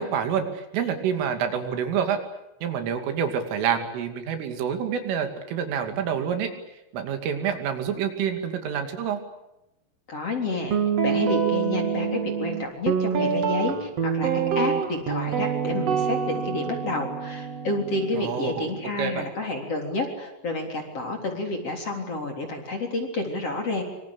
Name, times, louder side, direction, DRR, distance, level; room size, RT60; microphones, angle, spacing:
voice 1, 0.0-2.2 2.6-6.5 6.9-9.2 18.1-18.7 19.0-19.2, right 7 dB, 80° right, 6 dB, 5.1 m, -27 dB
voice 2, 10.1-10.8 11.0-23.8, left 2 dB, 35° left, 3 dB, 4.1 m, -30 dB
Guitar, 10.7-18.9, right 7 dB, 50° right, 2.2 m, -26 dB
26.0 x 25.5 x 8.6 m, 0.91 s
omnidirectional pair, 5.7 m